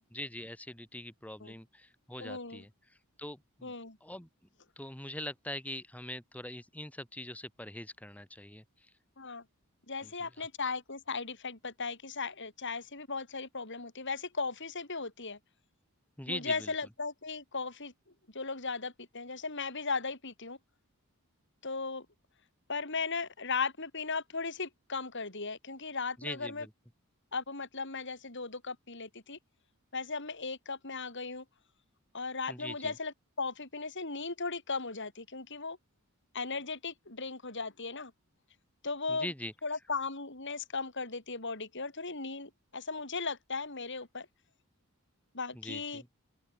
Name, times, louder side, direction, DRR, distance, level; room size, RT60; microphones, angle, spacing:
voice 1, 0.0-2.7 3.2-3.7 4.0-4.3 4.8-8.6 10.0-10.1 10.4-10.5 16.2-16.7 26.2-26.7 32.5-32.9 39.1-39.5 45.5-46.1, left 1 dB, 5° left, 2.9 m, -42 dB
voice 2, 2.2-2.6 3.6-4.0 9.2-9.4 9.9-15.4 16.3-17.9 18.3-20.6 21.6-22.0 22.7-26.7 27.3-29.4 29.9-31.4 32.1-35.8 36.3-38.1 38.8-39.3 39.6-44.3 45.3-46.0, left 4 dB, 55° left, 5.1 m, -37 dB
open air
head